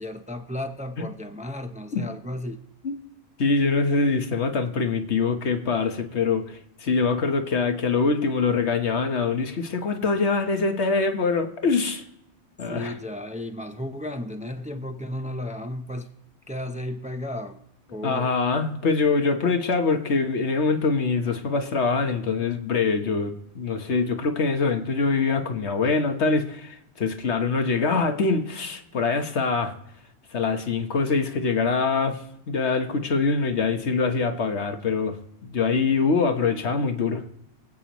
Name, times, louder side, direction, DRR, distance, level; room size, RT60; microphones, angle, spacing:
voice 1, 0.0-2.6 12.7-16.1 16.5-17.6 17.9-18.3, left 1 dB, 10° right, 0.7 m, -33 dB
voice 2, 3.4-12.0 12.6-12.9 18.0-29.7 30.3-32.2 32.5-37.2, left 4 dB, 80° left, 1.5 m, -24 dB
24.5 x 8.7 x 3.1 m
omnidirectional pair, 1.1 m